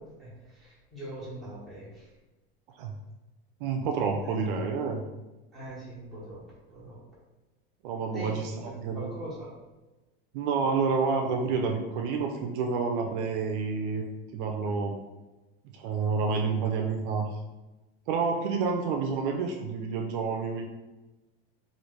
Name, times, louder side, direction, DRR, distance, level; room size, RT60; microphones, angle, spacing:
voice 1, 0.0-2.1 4.2-4.6 5.5-6.4 6.7-7.0 8.1-9.6, right 1 dB, ahead, -10 dB, 1.1 m, -42 dB
voice 2, 3.6-5.0 7.8-9.1 10.3-15.0 15.7-17.3 18.1-20.6, right 5 dB, 60° right, 2 dB, 0.4 m, -29 dB
3.0 x 2.5 x 3.1 m, 1.1 s
supercardioid pair, 155°, 30 cm